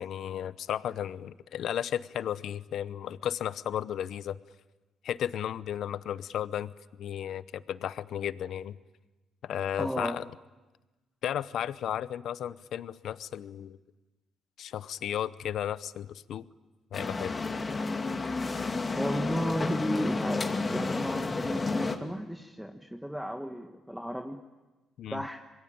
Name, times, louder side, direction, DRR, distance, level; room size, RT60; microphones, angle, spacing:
voice 1, 0.0-4.4 5.0-6.7 7.0-8.8 9.4-10.3 11.2-13.8 14.6-16.5 16.9-17.4 25.0-25.2, left 10 dB, 70° left, 16 dB, 0.8 m, -34 dB
voice 2, 9.8-10.2 18.9-24.4 25.1-25.4, equal, 5° right, 4 dB, 1.6 m, -34 dB
sound 1, 16.9-22.0, left 3 dB, 30° left, 2.6 m, -31 dB
26.5 x 22.0 x 8.8 m, 1.2 s
cardioid pair, 90°, 0 cm